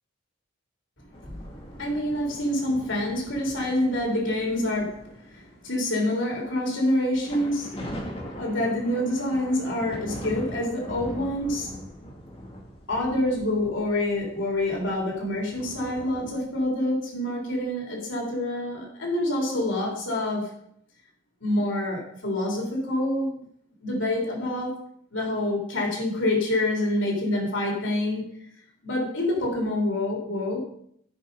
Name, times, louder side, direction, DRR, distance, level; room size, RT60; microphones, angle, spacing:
sound 1, 1.1-5.8 6.2-6.4 7.1-16.4, equal, 30° left, 2.1 m, -41 dB
voice 1, 1.8-7.7 8.3-11.8 12.9-20.5 21.4-23.3 23.8-24.8 25.1-28.3 28.8-30.7, left 1 dB, 80° left, -2 dB, 3.5 m, -27 dB
15.5 x 5.4 x 5.4 m, 0.68 s
head